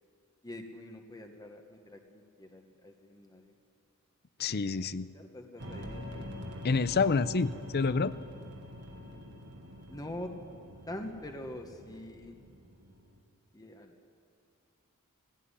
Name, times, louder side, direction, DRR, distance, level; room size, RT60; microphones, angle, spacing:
voice 1, 0.4-3.5 4.5-4.9 5.1-6.3 9.9-10.3 10.9-12.3 13.5-14.0, left 1 dB, 15° left, 4 dB, 1.3 m, -45 dB
voice 2, 4.4-5.1 6.6-8.1, left 4 dB, 45° left, 16 dB, 0.6 m, -28 dB
sound 1, 5.6-13.2, left 1 dB, 55° right, 2.0 m, -45 dB
17.0 x 16.5 x 9.8 m, 2.3 s
head